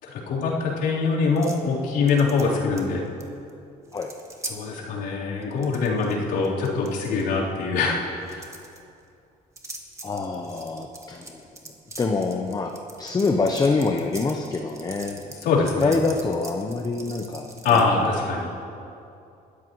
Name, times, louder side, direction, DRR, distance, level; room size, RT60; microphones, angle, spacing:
voice 1, 0.0-3.0 4.5-8.5 15.2-15.9 17.6-18.5, left 4 dB, 80° left, -6 dB, 3.8 m, -24 dB
sound 1, 1.4-1.7 2.1-3.2 3.5-3.6 3.9-4.6 5.4-6.1 6.4-7.2 8.2-8.8 9.6-17.9, right 2 dB, 15° right, 1.6 m, -41 dB
voice 2, 10.0-11.4 12.0-12.7 13.0-15.2 15.8-17.8, left 3 dB, 25° left, 4 dB, 0.8 m, -25 dB
22.0 x 13.5 x 3.1 m, 2.6 s
cardioid pair, 110°, 17 cm